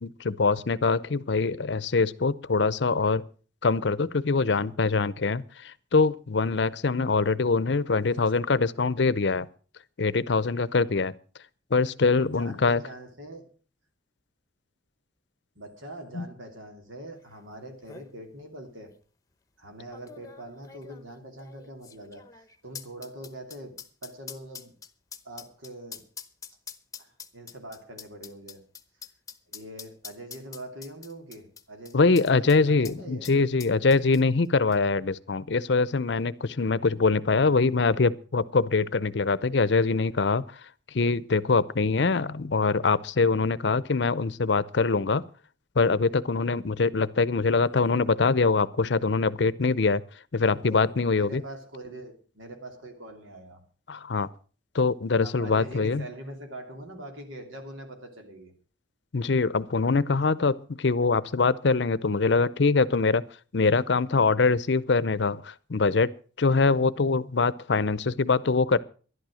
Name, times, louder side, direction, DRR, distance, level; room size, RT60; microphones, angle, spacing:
voice 1, 0.0-3.2 3.6-9.5 10.0-11.1 11.7-12.8 16.1-16.3 31.9-40.4 40.9-45.2 45.8-50.0 50.3-51.4 53.9-54.3 54.7-56.0 59.1-63.2 63.5-66.1 66.4-68.8, left 4 dB, 60° left, 0.6 m, -23 dB
voice 2, 12.2-13.5 15.5-18.9 19.6-24.8 25.2-26.1 27.0-28.6 29.5-33.3 47.7-47.9 50.4-53.6 55.2-58.5, right 1 dB, 90° right, 3.0 m, -43 dB
sound 1, 17.3-17.4 17.7-18.1 18.9-19.0 19.9-32.6 32.8-33.0 33.2-34.5 34.7-34.8, left 7 dB, 15° left, 0.9 m, -45 dB
12.0 x 11.5 x 6.3 m
head